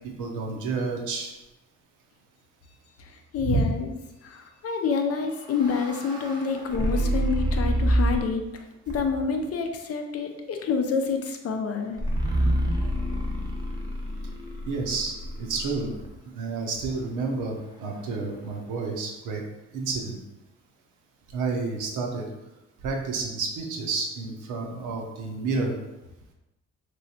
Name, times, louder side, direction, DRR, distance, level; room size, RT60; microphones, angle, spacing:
voice 1, 0.0-1.3 3.4-3.6 14.7-15.1 15.4-15.9 16.3-19.4 19.7-20.2 21.3-22.3 22.8-25.7, right 4 dB, 90° right, 1 dB, 0.7 m, -30 dB
voice 2, 3.0-3.9 4.2-12.0, left 5 dB, 50° left, 5 dB, 0.5 m, -28 dB
sound 1, 5.1-8.4 8.9-9.4 12.0-16.1, right 1 dB, 15° right, 0.8 m, -27 dB
3.1 x 3.0 x 2.7 m, 0.97 s
cardioid pair, 90°, 30 cm